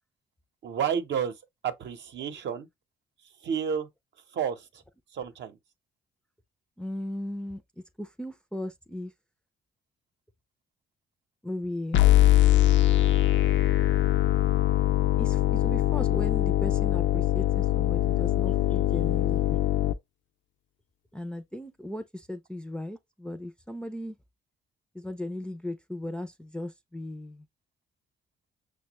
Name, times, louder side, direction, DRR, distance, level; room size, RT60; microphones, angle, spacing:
voice 1, 0.6-1.3 1.6-2.7 3.4-3.9 4.3-4.8 5.1-5.6, right 7 dB, 65° right, 0.8 m, -30 dB
voice 2, 6.8-7.6 8.0-9.1 11.4-12.0 15.2-19.9 21.1-24.2 24.9-27.5, left 1 dB, 5° left, 0.4 m, -37 dB
sound 1, 11.9-19.9, left 14 dB, 70° left, 0.5 m, -22 dB
5.9 x 2.2 x 2.9 m
cardioid pair, 90°, 20 cm